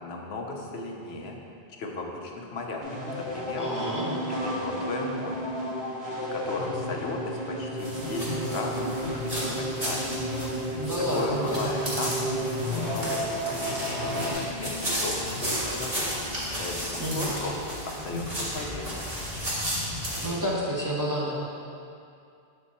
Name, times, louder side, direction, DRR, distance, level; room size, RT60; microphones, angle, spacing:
voice 1, 0.0-1.4 1.8-3.7 4.3-5.5 6.3-10.2 11.1-12.2 12.6-16.1 16.6-18.9, left 2 dB, 90° left, 1 dB, 1.0 m, -36 dB
sound 1, 2.8-14.3, equal, 75° right, 1.8 m, -32 dB
voice 2, 3.6-4.1 10.8-11.7 17.0-17.3 20.2-21.4, equal, 20° right, -6 dB, 0.8 m, -29 dB
sound 2, 7.8-20.3, equal, 35° right, 1.6 m, -33 dB
7.1 x 4.4 x 4.2 m, 2.5 s
omnidirectional pair, 1.0 m